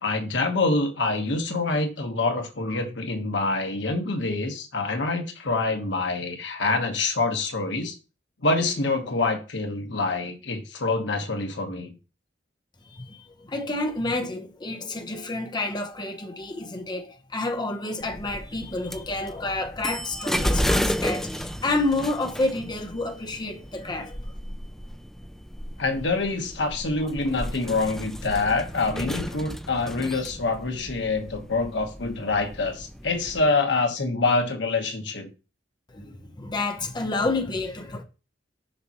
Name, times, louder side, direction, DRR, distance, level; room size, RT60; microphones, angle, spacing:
voice 1, 0.0-7.9 8.4-11.9 25.8-35.3, left 3 dB, 80° left, 1.2 m, -26 dB
voice 2, 12.9-24.3 35.9-38.0, left 2 dB, 25° left, 0.8 m, -29 dB
sound 1, 18.0-33.4, equal, ahead, 0.4 m, -33 dB
6.7 x 5.7 x 2.9 m
head